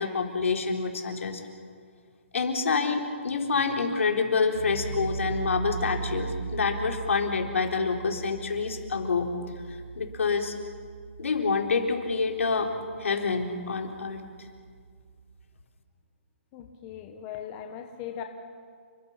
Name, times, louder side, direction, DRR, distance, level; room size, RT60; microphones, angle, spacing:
voice 1, 0.0-1.4 2.3-9.3 10.0-10.5 11.2-12.7 13.0-14.2, left 4 dB, 75° left, 2 dB, 3.9 m, -27 dB
sound 1, 4.5-15.4, right 6 dB, 70° right, 6.0 m, -39 dB
voice 2, 16.5-18.2, left 9 dB, 20° left, 4 dB, 1.0 m, -39 dB
29.5 x 22.0 x 5.8 m, 2.1 s
hypercardioid pair, 175°, 7 cm